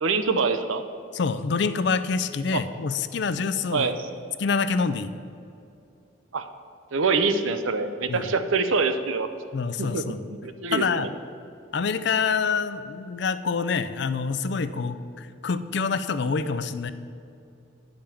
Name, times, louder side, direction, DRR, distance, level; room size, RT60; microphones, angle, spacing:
voice 1, 0.0-0.8 2.5-2.6 3.7-4.0 6.3-6.5 6.9-9.3 9.8-10.0 10.3-11.1, right 4 dB, 90° right, 9 dB, 0.6 m, -25 dB
voice 2, 1.1-3.9 4.4-5.1 8.1-8.3 9.5-10.3 10.7-11.1 11.7-16.9, left 5 dB, 60° left, 12 dB, 0.4 m, -26 dB
8.9 x 5.1 x 7.0 m, 2.6 s
head